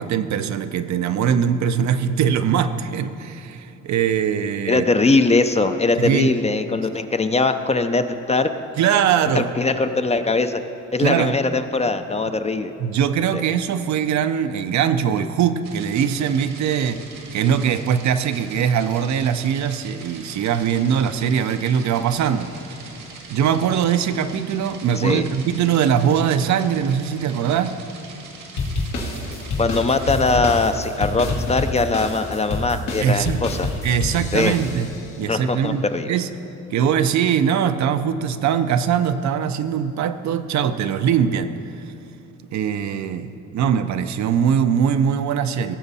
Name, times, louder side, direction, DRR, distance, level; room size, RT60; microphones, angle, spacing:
voice 1, 0.0-4.9 6.0-6.3 8.8-9.5 11.0-11.4 12.8-17.0 17.3-22.5 23.3-27.8 33.0-33.4 33.8-34.9 35.2-36.3 36.7-41.6 42.5-45.8, right 8 dB, 65° right, 10 dB, 0.6 m, -21 dB
voice 2, 4.7-8.5 9.3-10.6 10.9-12.7 13.3-13.4 25.0-25.3 29.6-33.7 34.3-34.5 35.3-36.1, left 3 dB, 20° left, 9 dB, 0.5 m, -21 dB
sound 1, 15.6-30.4, right 4 dB, 90° right, 1.8 m, -42 dB
sound 2, 28.6-35.1, left 2 dB, 85° left, 2.0 m, -27 dB
17.0 x 7.0 x 4.1 m, 2.9 s
cardioid pair, 90°, 30 cm